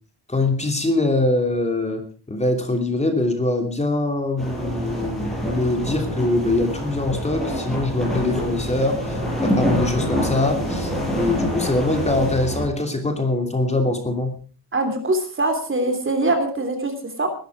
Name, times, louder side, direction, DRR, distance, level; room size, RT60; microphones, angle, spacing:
voice 1, 0.3-2.0 2.3-14.4, left 2 dB, 15° left, 4 dB, 2.9 m, -23 dB
sound 1, 4.4-12.6, equal, ahead, 7.4 m, -26 dB
voice 2, 14.7-17.3, right 2 dB, 30° right, 6 dB, 3.4 m, -23 dB
20.0 x 12.5 x 4.8 m, 0.41 s
wide cardioid pair, 150°, 41 cm